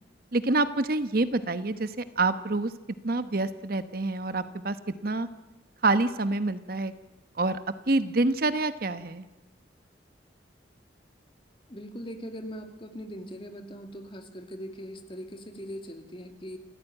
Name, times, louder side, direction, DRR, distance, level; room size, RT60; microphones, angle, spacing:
voice 1, 0.3-2.7 3.0-4.8 5.0-5.3 5.8-6.9 7.4-7.6 7.9-9.3, right 2 dB, 55° right, 12 dB, 1.0 m, -27 dB
voice 2, 11.7-16.6, equal, 30° left, 6 dB, 2.4 m, -40 dB
28.0 x 15.0 x 9.1 m, 1.1 s
head